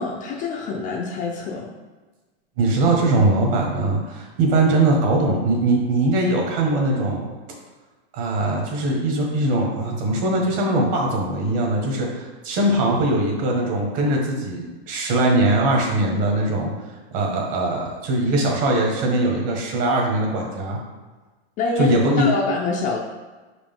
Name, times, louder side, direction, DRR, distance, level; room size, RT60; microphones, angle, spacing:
voice 1, 0.0-1.7 21.6-23.0, left 3 dB, 25° left, -1 dB, 0.4 m, -26 dB
voice 2, 2.6-7.3 8.1-16.7 17.1-20.8 21.8-22.3, right 2 dB, 45° right, 0 dB, 1.6 m, -21 dB
5.2 x 5.0 x 3.7 m, 1.2 s
supercardioid pair, 145°, 33 cm